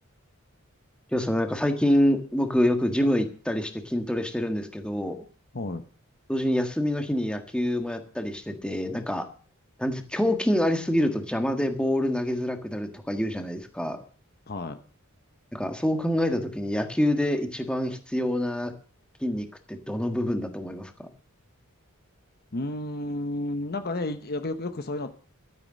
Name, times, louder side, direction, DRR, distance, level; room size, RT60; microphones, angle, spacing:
voice 1, 1.1-5.2 6.3-9.3 9.8-14.0 15.5-18.7 19.2-21.1, left 1 dB, 5° left, 6 dB, 1.6 m, -26 dB
voice 2, 14.5-14.8 22.5-25.1, left 2 dB, 45° left, 9 dB, 1.0 m, -31 dB
12.5 x 9.6 x 7.5 m, 0.41 s
head